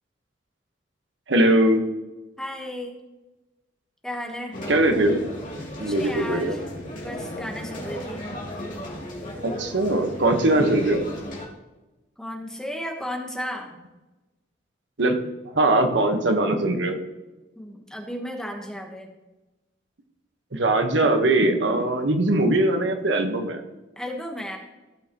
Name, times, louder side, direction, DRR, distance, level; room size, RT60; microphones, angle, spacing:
voice 1, 1.3-1.8 4.7-5.2 5.8-6.6 9.4-11.0 15.0-15.2 15.5-17.0 20.5-23.6, right 1 dB, 75° right, 5 dB, 1.2 m, -21 dB
voice 2, 2.4-3.0 4.0-4.7 5.8-6.6 6.9-8.2 12.2-13.8 17.5-19.1 24.0-24.6, equal, 5° left, 2 dB, 1.2 m, -34 dB
sound 1, 4.5-11.5, left 1 dB, 45° left, 2.9 m, -35 dB
16.0 x 6.5 x 3.0 m, 1.1 s
head